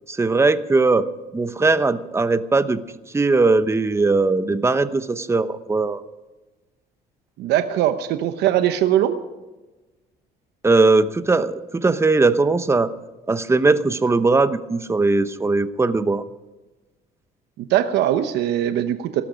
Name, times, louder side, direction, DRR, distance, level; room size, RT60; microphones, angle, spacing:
voice 1, 0.1-1.0 1.3-2.8 3.1-6.0 10.6-12.9 13.3-16.2, right 3 dB, 15° right, 12 dB, 0.9 m, -19 dB
voice 2, 7.4-9.2 17.6-19.2, right 11 dB, 80° right, 9 dB, 1.0 m, -21 dB
17.5 x 13.0 x 5.2 m, 1.1 s
cardioid pair, 110°, 17 cm